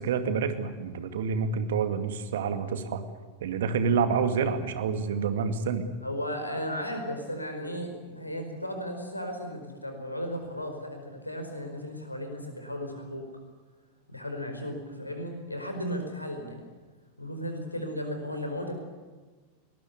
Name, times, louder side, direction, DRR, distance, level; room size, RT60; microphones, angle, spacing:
voice 1, 0.0-3.0 3.4-5.9, right 6 dB, 60° right, 9 dB, 2.3 m, -28 dB
voice 2, 6.0-13.2 14.1-16.7 17.2-18.8, equal, 85° left, 5 dB, 4.8 m, -35 dB
22.0 x 20.0 x 9.5 m, 1.4 s
figure-of-eight pair, 90°, 0 cm